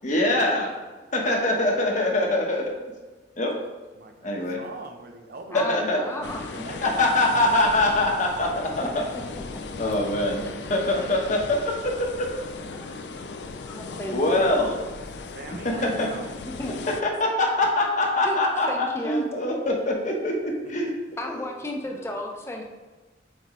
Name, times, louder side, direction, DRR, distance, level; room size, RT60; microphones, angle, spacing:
voice 1, 0.0-0.7 1.1-2.7 3.4-3.5 4.2-4.6 5.5-6.0 6.8-9.0 9.8-10.4 10.7-11.9 12.2-12.3 14.1-14.8 15.6-16.1 16.6-16.7 17.2-20.9, left 1 dB, 45° left, 1 dB, 1.1 m, -23 dB
voice 2, 1.2-1.7 4.0-7.0 15.1-16.3, right 3 dB, 60° right, 4 dB, 0.7 m, -43 dB
voice 3, 5.5-7.0 10.4-10.5 12.7-12.9 13.6-14.6 15.7-15.8 16.6-16.7 18.2-18.4 18.7-19.2 21.2-22.6, left 1 dB, 15° left, 1 dB, 0.8 m, -34 dB
sound 1, 6.2-17.0, left 3 dB, 75° left, 0.4 m, -37 dB
7.6 x 4.2 x 3.2 m, 1.2 s
head